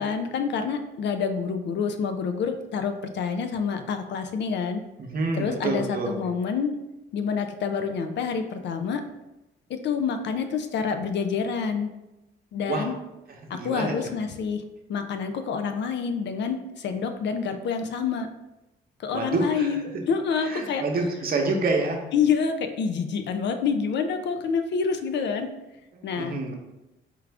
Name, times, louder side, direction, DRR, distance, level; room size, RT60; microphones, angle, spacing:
voice 1, 0.0-4.8 5.3-6.7 7.1-9.0 9.7-11.9 12.5-12.9 13.5-14.6 14.9-18.3 19.0-20.8 22.1-25.5 26.0-26.4, left 6 dB, 65° left, 8 dB, 0.5 m, -27 dB
voice 2, 5.0-6.1 12.7-12.8 13.5-14.0 19.1-19.7 20.5-22.0 26.2-26.5, right 3 dB, 50° right, 2 dB, 0.8 m, -27 dB
4.5 x 2.5 x 3.3 m, 0.96 s
cardioid pair, 90°, 20 cm